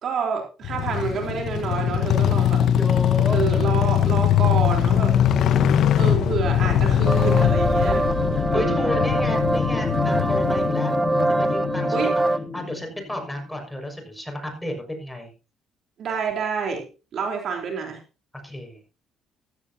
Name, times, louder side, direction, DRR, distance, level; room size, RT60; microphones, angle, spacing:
voice 1, 0.0-2.6 3.3-5.2 6.0-8.0 8.5-9.0 11.9-12.1 16.0-18.0, right 5 dB, 60° right, 3 dB, 3.8 m, -28 dB
sound 1, 0.6-10.7, left 10 dB, 65° left, 1.0 m, -21 dB
voice 2, 2.8-4.1 8.3-10.9 11.3-15.3 18.4-18.8, left 1 dB, 10° left, 4 dB, 5.9 m, -32 dB
sound 2, 6.5-13.5, left 5 dB, 45° left, 1.7 m, -29 dB
sound 3, 7.1-12.4, right 2 dB, 15° right, 0.9 m, -24 dB
15.0 x 13.5 x 2.8 m, 0.32 s
cardioid pair, 85°, 0 cm